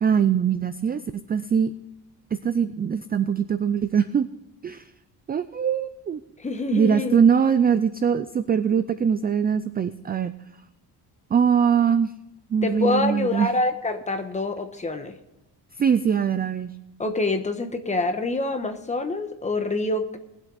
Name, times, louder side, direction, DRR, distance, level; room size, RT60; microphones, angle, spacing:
voice 1, 0.0-1.7 2.4-4.3 4.6-4.8 5.3-6.2 6.7-10.3 11.3-12.1 12.5-13.5 15.8-16.7, right 7 dB, 25° right, 12 dB, 0.3 m, -22 dB
voice 2, 6.4-7.2 12.6-15.1 17.0-20.2, left 2 dB, 15° left, 6 dB, 1.2 m, -26 dB
19.5 x 8.1 x 4.0 m, 0.92 s
cardioid pair, 170°, 42 cm